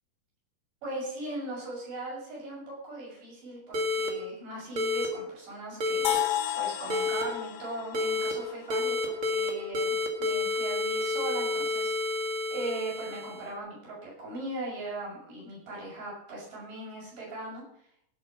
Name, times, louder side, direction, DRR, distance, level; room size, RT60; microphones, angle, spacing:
voice 1, 0.8-6.1 6.6-17.6, right 1 dB, 60° right, -4 dB, 8.5 m, -39 dB
sound 1, 3.7-4.1 4.8-5.1 5.8-6.2 6.9-7.2 7.9-8.3 8.7-9.5 9.7-13.5, left 3 dB, 40° right, 2.3 m, -29 dB
sound 2, 6.0-10.0, left 14 dB, 80° left, 2.7 m, -33 dB
17.0 x 8.0 x 6.3 m, 0.71 s
omnidirectional pair, 4.2 m